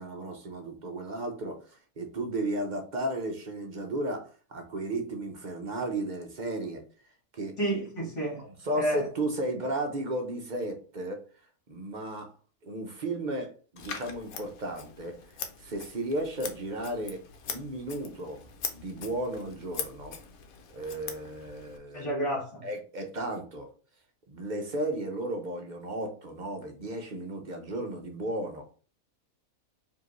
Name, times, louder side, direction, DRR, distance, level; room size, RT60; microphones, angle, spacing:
voice 1, 0.0-6.8 7.3-7.6 8.4-11.2 11.7-12.3 12.6-15.2 15.6-18.4 18.7-20.2 20.7-22.1 22.6-23.7 24.3-28.7, right 1 dB, 45° right, 0.6 m, -34 dB
voice 2, 7.6-8.4 8.7-9.1 21.9-22.7, right 1 dB, 40° left, 1.9 m, -30 dB
Scissors, 13.8-21.8, left 7 dB, 90° left, 1.2 m, -42 dB
4.8 x 2.9 x 3.0 m
omnidirectional pair, 1.5 m